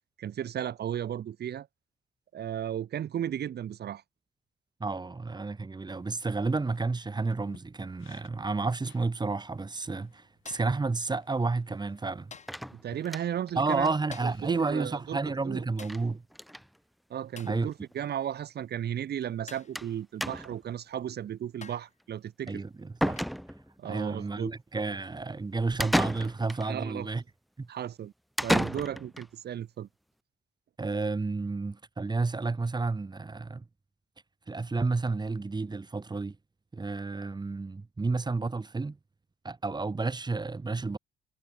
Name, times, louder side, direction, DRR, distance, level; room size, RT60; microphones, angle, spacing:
voice 1, 0.2-1.7 2.3-4.0 12.7-13.9 14.2-15.6 17.1-22.6 23.8-24.5 26.6-27.1 27.7-28.1 28.4-29.9, right 10 dB, 55° right, 1.0 m, -35 dB
voice 2, 4.8-12.3 13.5-16.2 17.4-17.7 22.5-23.2 23.8-27.2 27.6-27.7 30.8-33.6 34.5-36.4 36.7-39.0 39.4-41.0, right 3 dB, 20° right, 1.6 m, -31 dB
sound 1, 5.9-14.5, left 14 dB, 80° left, 4.7 m, -60 dB
sound 2, 10.5-10.9 12.3-12.7 14.1-14.5 15.8-16.1 17.4-17.7 19.5-19.8 20.9-21.0 21.6-22.0 23.2-23.4 25.0-25.2, left 5 dB, 35° left, 2.0 m, -50 dB
sound 3, 12.5-13.5 13.9-14.0 14.2-14.3 14.6-14.7 15.8-16.1 16.3-16.7 17.5-17.6 17.9-18.0 19.8-19.9 20.2-20.7 22.5-22.6 23.0-23.8 25.8-26.7 28.4-29.3, equal, ahead, 0.3 m, -31 dB
cardioid pair, 90°, 20 cm